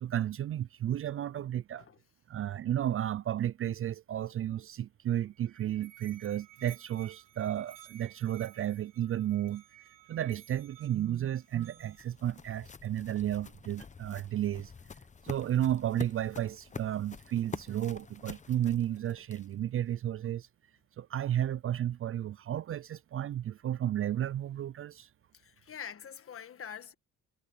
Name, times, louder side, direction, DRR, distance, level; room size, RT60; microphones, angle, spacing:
voice 1, 0.0-1.8 2.3-9.6 10.1-14.7 15.2-20.5 21.0-25.1, right 11 dB, 45° right, 0.4 m, -33 dB
Musical instrument, 5.3-12.2, right 13 dB, 70° right, 4.9 m, -55 dB
sound 1, 11.2-19.7, left 5 dB, 25° left, 0.8 m, -47 dB
voice 2, 25.3-26.9, left 7 dB, 45° left, 1.5 m, -45 dB
cardioid pair, 110°, 32 cm